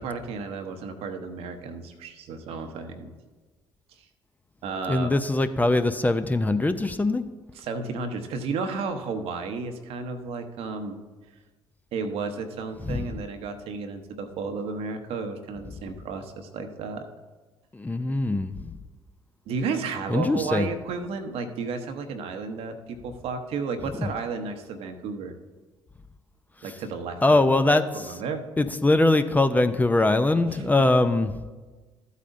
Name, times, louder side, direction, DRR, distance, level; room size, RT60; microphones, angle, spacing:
voice 1, 0.0-3.1 4.0-4.1 4.6-5.1 7.5-11.0 11.9-17.1 19.5-25.3 26.6-27.2 27.9-28.4 30.5-30.7, right 4 dB, 60° right, 6 dB, 0.9 m, -33 dB
voice 2, 4.9-7.2 12.9-13.1 17.7-18.7 20.1-20.7 27.2-28.1 28.6-31.3, left 2 dB, 15° left, 10 dB, 0.6 m, -22 dB
13.5 x 8.3 x 2.6 m, 1.3 s
hypercardioid pair, 50°, 11 cm